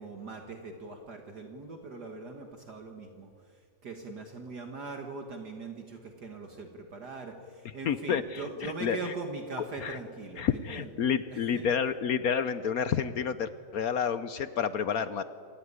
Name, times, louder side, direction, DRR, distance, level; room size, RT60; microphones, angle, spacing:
voice 1, 0.0-10.9 11.3-11.7, right 3 dB, 55° right, 4 dB, 2.1 m, -41 dB
voice 2, 7.8-8.4 8.8-9.1 9.8-10.0 10.4-15.2, left 7 dB, 65° left, 13 dB, 1.0 m, -29 dB
27.0 x 14.5 x 9.7 m, 2.2 s
omnidirectional pair, 2.2 m